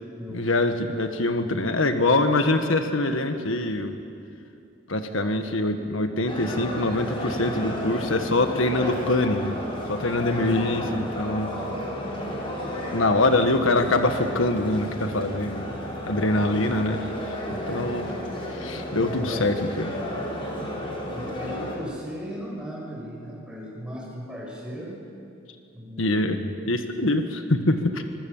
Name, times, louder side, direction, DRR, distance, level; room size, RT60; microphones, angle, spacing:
voice 1, 0.3-4.0 4.9-9.5 9.9-11.5 12.9-15.7 16.1-17.4 17.7-18.1 18.5-20.0 26.0-28.0, left 2 dB, 85° left, 6 dB, 1.6 m, -24 dB
sound 1, 6.3-21.8, equal, 25° left, 5.0 m, -32 dB
voice 2, 10.3-10.7 13.4-13.5 19.3-19.5 21.1-25.0 25.7-26.1 27.0-27.1, equal, 5° right, -3 dB, 6.8 m, -37 dB
25.5 x 23.0 x 7.3 m, 2.5 s
head